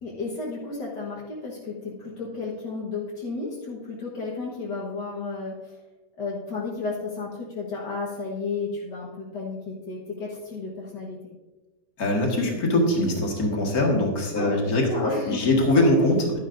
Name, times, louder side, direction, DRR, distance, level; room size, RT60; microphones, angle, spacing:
voice 1, 0.0-5.8 6.2-11.2 14.3-15.4, left 3 dB, 70° left, -5 dB, 1.9 m, -33 dB
voice 2, 12.0-16.4, left 1 dB, 55° left, -1 dB, 2.3 m, -22 dB
11.5 x 10.5 x 2.6 m, 1.2 s
omnidirectional pair, 1.9 m